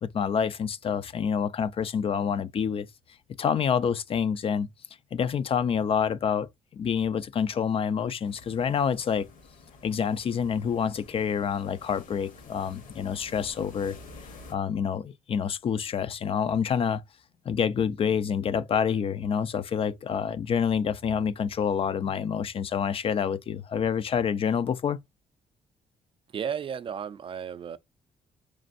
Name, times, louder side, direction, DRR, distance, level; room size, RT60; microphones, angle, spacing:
voice 1, 0.0-2.9 3.4-4.7 5.1-6.5 6.7-9.3 9.8-14.0 14.2-17.0 17.5-25.0, left 7 dB, 40° left, 0.3 m, -27 dB
sound 1, 8.2-14.5, left 3 dB, 70° left, 1.2 m, -50 dB
voice 2, 26.3-27.8, right 7 dB, 40° right, 0.4 m, -33 dB
4.2 x 3.1 x 2.5 m
cardioid pair, 125°, 14 cm